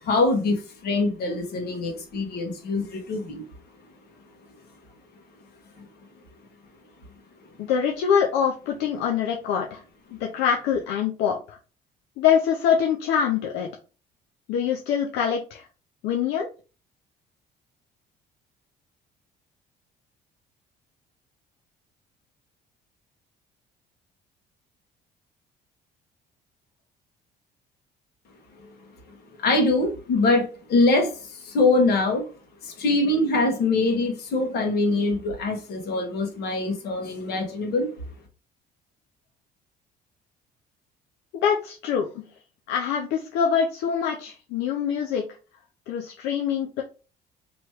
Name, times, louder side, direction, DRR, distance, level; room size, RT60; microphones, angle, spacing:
voice 1, 0.0-3.4 5.8-5.9 29.4-32.3 32.6-37.9, left 2 dB, 70° left, 3 dB, 1.5 m, -23 dB
voice 2, 7.6-9.8 10.1-11.6 12.2-13.7 14.5-15.7 16.0-16.5 41.4-42.3 42.7-45.3 45.9-46.8, left 7 dB, 90° left, 1 dB, 0.6 m, -24 dB
3.1 x 3.0 x 4.6 m, 0.35 s
cardioid pair, 110°, 17 cm